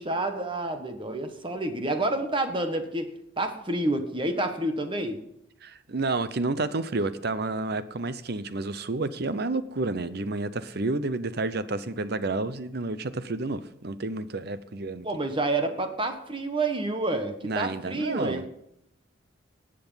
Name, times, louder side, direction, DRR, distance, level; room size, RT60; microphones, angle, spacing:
voice 1, 0.0-3.1 3.4-5.2 15.0-18.5, right 2 dB, 25° right, 1.4 m, -29 dB
voice 2, 5.6-15.1 17.4-18.5, right 3 dB, 55° right, 0.8 m, -30 dB
17.5 x 7.7 x 5.7 m
head